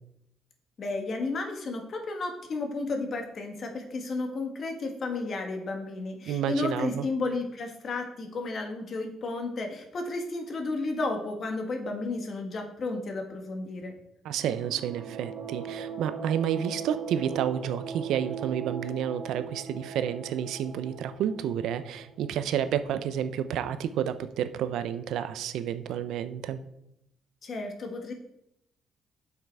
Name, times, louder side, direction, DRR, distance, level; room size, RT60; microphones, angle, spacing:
voice 1, 0.8-13.9 27.4-28.1, left 3 dB, 50° left, 3 dB, 1.8 m, -33 dB
voice 2, 6.3-7.0 14.2-26.6, right 9 dB, 85° right, 12 dB, 0.6 m, -30 dB
sound 1, 14.4-23.0, right 6 dB, 65° right, 2.1 m, -40 dB
7.5 x 5.8 x 4.7 m, 0.81 s
cardioid pair, 90°, 0 cm